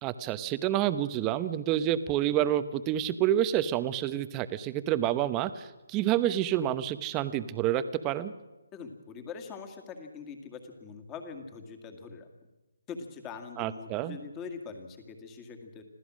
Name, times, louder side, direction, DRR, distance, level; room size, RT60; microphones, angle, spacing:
voice 1, 0.0-8.3 13.6-14.2, right 12 dB, 15° right, 13 dB, 0.9 m, -28 dB
voice 2, 8.7-12.3 12.9-15.8, left 5 dB, 15° left, 6 dB, 2.2 m, -43 dB
26.0 x 16.0 x 6.3 m, 1.2 s
hypercardioid pair, 160°, 0 cm